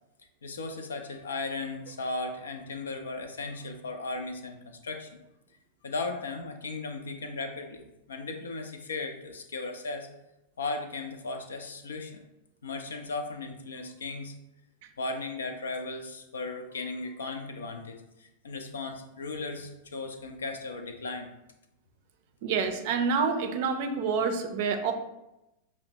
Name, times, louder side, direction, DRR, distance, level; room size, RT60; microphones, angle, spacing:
voice 1, 0.4-5.2 5.8-10.1 10.6-12.2 12.6-14.3 15.0-21.3, left 3 dB, 70° left, 6 dB, 0.4 m, -36 dB
voice 2, 22.4-24.9, right 5 dB, 50° right, 6 dB, 0.4 m, -27 dB
5.5 x 2.0 x 2.8 m, 0.91 s
figure-of-eight pair, 90°, 0 cm